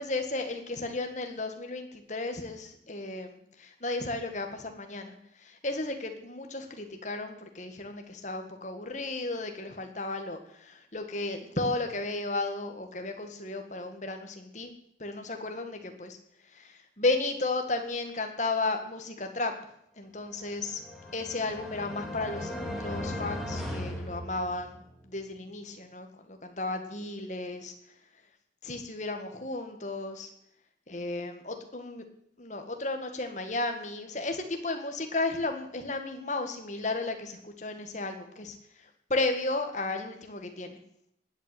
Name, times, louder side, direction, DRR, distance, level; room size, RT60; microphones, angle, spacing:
voice 1, 0.0-14.7 15.0-16.2 16.5-19.5 20.0-20.8 21.1-27.7 28.6-30.3 30.9-32.0 32.4-38.6 39.1-40.8, left 2 dB, 40° left, 6 dB, 2.0 m, -34 dB
sound 1, 20.5-24.9, left 1 dB, ahead, 2.6 m, -37 dB
19.5 x 8.2 x 8.7 m, 0.73 s
head